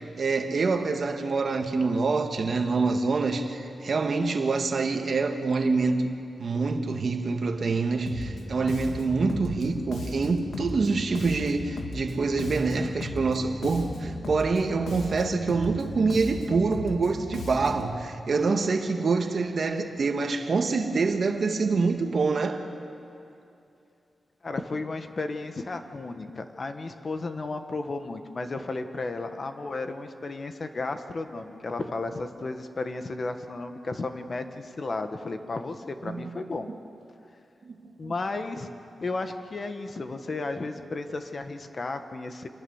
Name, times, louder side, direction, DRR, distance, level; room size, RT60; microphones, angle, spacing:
voice 1, 0.0-6.1 6.4-22.6 36.0-36.4 37.7-38.1, right 4 dB, 50° right, 5 dB, 1.7 m, -26 dB
Bass guitar, 8.1-17.9, left 2 dB, 75° left, 2.5 m, -37 dB
voice 2, 24.4-36.7 38.0-38.7 39.0-42.5, left 3 dB, 35° left, 7 dB, 1.3 m, -33 dB
27.5 x 20.5 x 7.2 m, 2.6 s
wide cardioid pair, 150°, 0 cm